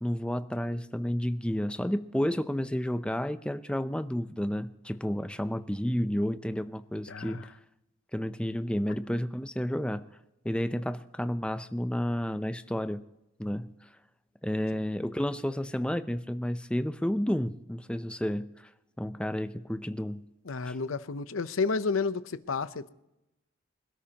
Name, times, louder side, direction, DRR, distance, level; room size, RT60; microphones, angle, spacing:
voice 1, 0.0-7.5 8.1-10.0 10.4-13.0 13.4-13.7 14.4-18.5 19.0-20.2 20.7-20.8, equal, 5° left, 0.5 m, -31 dB
voice 2, 7.1-7.5 20.5-22.9, left 4 dB, 80° left, 0.7 m, -31 dB
26.0 x 13.0 x 2.9 m
head